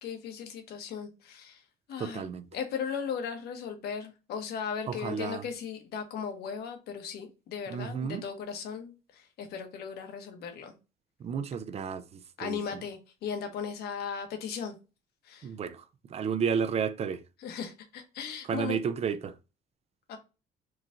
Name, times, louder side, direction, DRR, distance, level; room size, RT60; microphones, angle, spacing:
voice 1, 0.0-1.6 1.9-2.2 2.5-10.7 12.4-14.8 15.2-15.5 17.4-18.8 20.1-20.2, left 7 dB, 70° left, 1.1 m, -37 dB
voice 2, 2.0-2.5 4.9-5.5 7.7-8.3 11.2-12.6 15.4-15.8 16.1-17.2 18.5-19.3, right 6 dB, 40° right, 0.5 m, -32 dB
4.5 x 2.5 x 3.7 m
cardioid pair, 110°, 17 cm